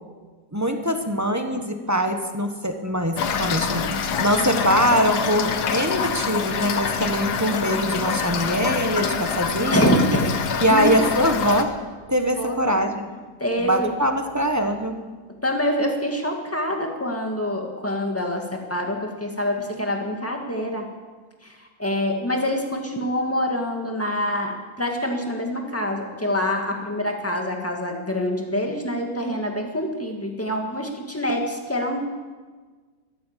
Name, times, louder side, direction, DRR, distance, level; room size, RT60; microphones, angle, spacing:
voice 1, 0.5-3.9 4.2-9.9 10.6-11.8 12.1-13.1 13.6-15.0 19.6-19.8, equal, 15° right, 6 dB, 0.9 m, -23 dB
Toilet flush / Fill (with liquid), 3.2-11.6, left 6 dB, 85° left, 1.6 m, -26 dB
voice 2, 9.7-10.4 10.7-10.9 12.4-12.8 13.4-13.9 15.4-20.8 21.4-21.5 21.8-32.0, equal, 10° left, 2 dB, 2.0 m, -25 dB
14.0 x 13.0 x 7.4 m, 1.4 s
omnidirectional pair, 1.7 m